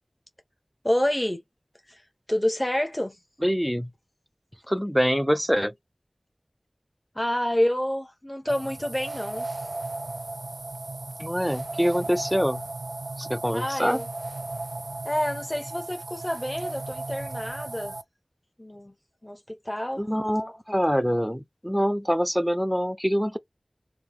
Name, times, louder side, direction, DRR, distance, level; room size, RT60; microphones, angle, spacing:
voice 1, 0.8-1.4 1.9-2.0 2.3-3.2 7.1-9.7 13.5-14.1 15.0-18.0 18.6-18.9 19.2-20.0, left 1 dB, 20° left, 1.3 m, -28 dB
voice 2, 3.4-3.9 4.7-5.7 11.2-12.7 13.2-14.0 20.0-23.4, equal, ahead, 0.6 m, -25 dB
sound 1, 8.5-18.0, right 2 dB, 75° right, 0.5 m, -36 dB
3.4 x 2.8 x 3.6 m
wide cardioid pair, 40°, 0 cm